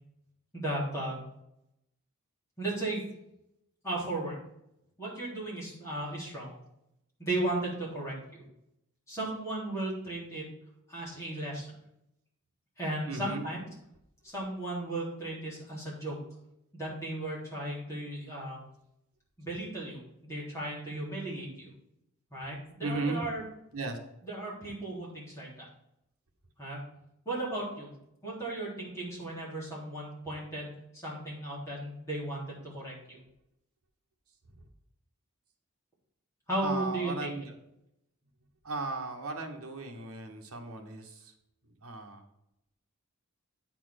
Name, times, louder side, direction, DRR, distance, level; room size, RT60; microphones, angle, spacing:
voice 1, 0.5-1.2 2.6-3.0 3.8-4.4 5.0-6.6 7.2-8.1 9.1-10.4 10.9-11.7 12.8-13.7 14.2-16.2 16.7-18.6 19.4-21.7 22.3-23.4 24.2-25.7 26.6-26.8 27.3-27.9 28.2-33.2 36.5-37.3, right 1 dB, 15° left, -7 dB, 3.7 m, -35 dB
voice 2, 13.1-13.4 22.8-23.3 23.7-24.0 34.5-34.7 36.6-37.5 38.6-41.3 41.7-42.2, right 2 dB, 75° right, 3 dB, 1.4 m, -36 dB
9.0 x 4.5 x 6.0 m, 0.81 s
head